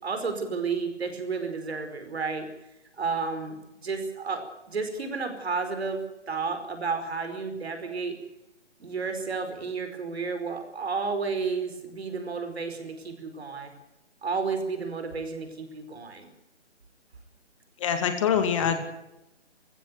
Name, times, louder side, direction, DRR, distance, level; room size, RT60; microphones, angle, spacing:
voice 1, 0.0-2.5 3.0-8.2 8.8-13.7 14.2-16.3 18.6-18.7, right 4 dB, 60° right, 7 dB, 4.9 m, -32 dB
voice 2, 17.8-18.9, left 8 dB, 25° left, 7 dB, 2.2 m, -25 dB
21.5 x 15.5 x 9.4 m, 0.90 s
figure-of-eight pair, 155°, 35 cm